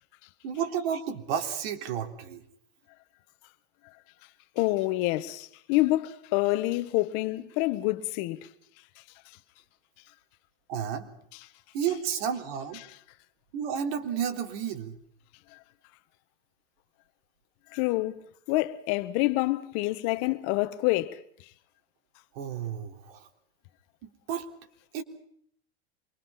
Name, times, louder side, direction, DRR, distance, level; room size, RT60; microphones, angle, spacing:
voice 1, 0.4-2.4 10.7-11.1 11.7-12.8 13.5-15.0 22.3-23.3 24.0-24.5 24.9-25.0, right 8 dB, 60° right, 3.6 m, -32 dB
voice 2, 4.5-8.5 17.7-18.2 18.5-21.2, left 19 dB, 45° left, 1.6 m, -27 dB
25.5 x 23.5 x 5.8 m
supercardioid pair, 140°, 34 cm